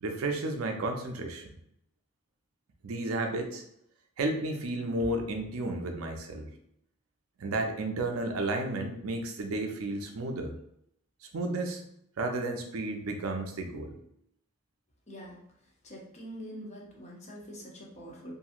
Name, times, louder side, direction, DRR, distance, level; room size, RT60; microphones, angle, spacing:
voice 1, 0.0-1.5 2.8-3.6 4.2-6.5 7.4-10.5 11.3-11.8 12.2-14.0, right 2 dB, 90° right, 4 dB, 0.5 m, -32 dB
voice 2, 15.1-15.4 15.8-18.4, equal, 35° left, -2 dB, 0.6 m, -44 dB
2.8 x 2.6 x 2.4 m, 0.74 s
head